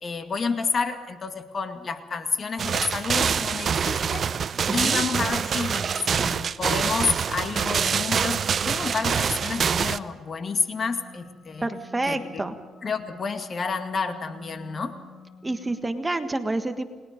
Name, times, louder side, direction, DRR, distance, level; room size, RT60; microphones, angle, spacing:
voice 1, 0.0-4.3 4.7-11.7 12.1-12.5 12.8-15.0, left 5 dB, 45° left, 7 dB, 2.0 m, -29 dB
sound 1, 2.6-10.0, right 7 dB, 50° right, 0.7 m, -25 dB
voice 2, 4.7-5.0 11.6-12.5 15.4-16.8, right 2 dB, 15° right, 8 dB, 1.5 m, -28 dB
sound 2, 10.8-15.8, equal, 70° left, 4.1 m, -48 dB
29.5 x 20.5 x 5.2 m, 1.4 s
cardioid pair, 90°, 0 cm